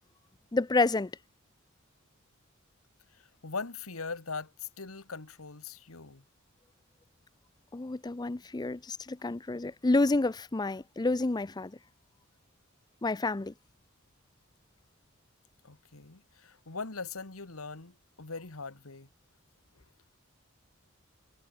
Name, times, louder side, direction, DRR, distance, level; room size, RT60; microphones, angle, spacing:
voice 1, 0.5-1.1 7.7-11.7 13.0-13.5, left 2 dB, 20° left, 0.5 m, -29 dB
voice 2, 3.2-6.2 15.6-19.1, left 4 dB, 90° left, 1.8 m, -41 dB
head